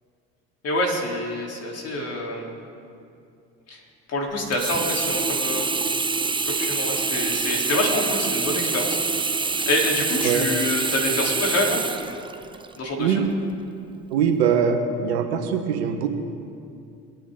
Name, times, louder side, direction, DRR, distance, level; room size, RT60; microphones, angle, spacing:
voice 1, 0.6-2.5 3.7-3.8 4.1-5.7 6.5-9.0 9.7-11.8 12.8-13.3, left 1 dB, 50° left, -1 dB, 3.7 m, -26 dB
Sink (filling or washing), 4.5-12.8 13.3-13.4, right 4 dB, 15° right, 0.7 m, -26 dB
voice 2, 14.1-16.1, right 7 dB, 90° right, 5 dB, 1.4 m, -22 dB
24.0 x 9.3 x 3.9 m, 2.5 s
hypercardioid pair, 70°, 32 cm